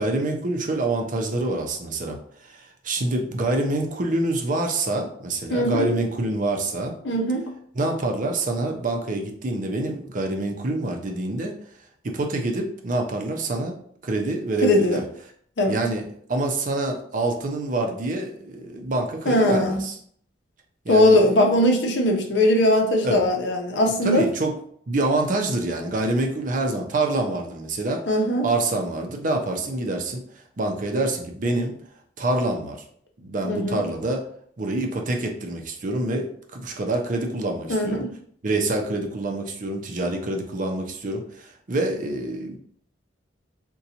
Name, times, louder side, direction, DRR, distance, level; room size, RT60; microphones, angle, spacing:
voice 1, 0.0-6.9 7.7-11.6 12.0-13.7 14.0-15.0 15.7-20.0 20.8-21.5 23.0-23.2 24.0-24.5 24.9-28.0 28.4-30.2 30.6-31.8 32.2-32.8 33.2-34.2 34.6-38.1 38.4-42.6, right 2 dB, 45° right, 3 dB, 0.5 m, -26 dB
voice 2, 5.5-5.9 7.0-7.5 14.6-15.0 15.6-15.8 19.3-19.8 20.9-24.3 28.1-28.5 33.5-33.8 37.7-38.1, left 1 dB, 75° left, 2 dB, 0.6 m, -20 dB
3.8 x 2.2 x 2.8 m, 0.62 s
head